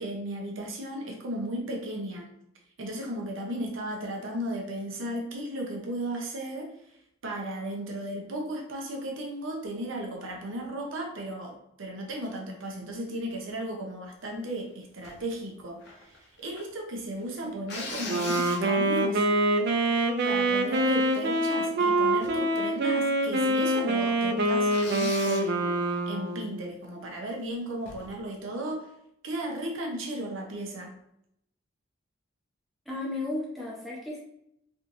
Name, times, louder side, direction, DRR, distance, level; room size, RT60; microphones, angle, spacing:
voice 1, 0.0-2.3 2.8-6.7 7.2-19.3 20.2-25.8 26.1-28.9 29.2-31.0, right 1 dB, 75° right, 1 dB, 0.8 m, -35 dB
sound 1, 15.0-15.2 15.8-16.7 17.7-19.0 19.6-19.7 20.0-20.4 20.7-21.6 22.2-22.5 22.7-22.8 23.4-23.5 23.8-23.9 24.6-25.5 27.8-28.2, left 3 dB, 55° left, 0.7 m, -40 dB
Wind instrument woodwind instrument, 18.1-26.7, right 1 dB, 50° right, 0.4 m, -25 dB
voice 2, 32.9-34.2, left 2 dB, ahead, -5 dB, 0.7 m, -34 dB
3.3 x 2.9 x 2.6 m, 0.77 s
head